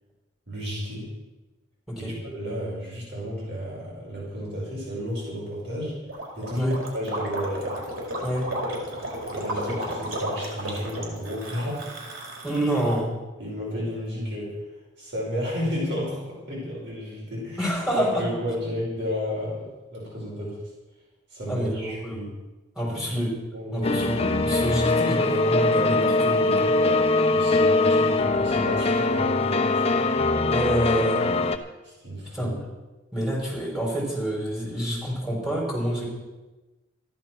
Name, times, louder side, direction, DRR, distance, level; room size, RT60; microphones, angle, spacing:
voice 1, 0.5-1.1 2.0-5.9 6.4-7.7 9.3-12.0 13.4-14.6 15.0-20.6 21.3-22.3 22.9-23.0 23.5-23.9 26.8-27.0 27.3-30.0 31.8-32.5, equal, 60° right, -4 dB, 5.2 m, -32 dB
Gurgling, 6.1-13.0, right 1 dB, 90° right, 4.4 m, -32 dB
voice 2, 12.4-13.1 17.6-18.3 21.5-22.2 22.8-23.3 23.7-26.7 30.5-31.2 32.3-32.5 33.1-36.0, equal, ahead, -4 dB, 5.4 m, -27 dB
sound 1, 23.8-31.6, left 2 dB, 30° left, 0.9 m, -22 dB
14.0 x 11.5 x 6.2 m, 1.1 s
head